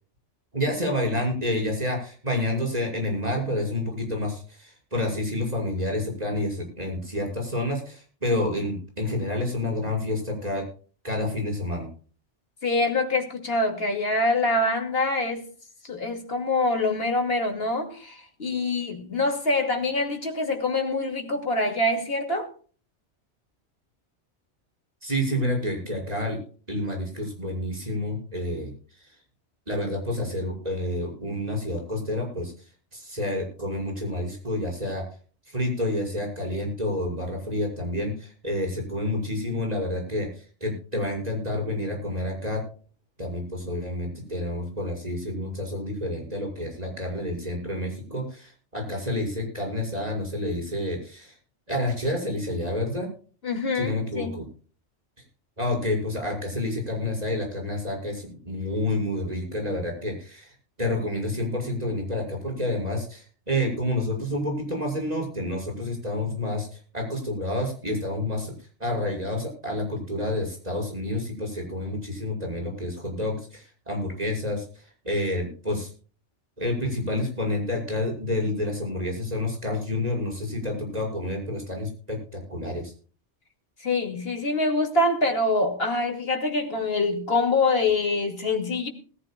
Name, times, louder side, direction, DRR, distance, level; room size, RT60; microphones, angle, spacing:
voice 1, 0.5-10.6 11.0-11.9 25.0-26.4 26.7-29.1 29.7-32.5 32.9-35.0 35.5-42.6 43.2-51.3 51.7-53.1 53.7-54.5 55.6-68.5 68.8-75.9 76.6-82.9, left 1 dB, 35° right, 6.3 m, -29 dB
voice 2, 12.6-15.5 15.8-22.5 53.4-54.4 83.8-88.9, left 2 dB, 55° left, 2.7 m, -25 dB
20.5 x 14.0 x 2.3 m
omnidirectional pair, 1.2 m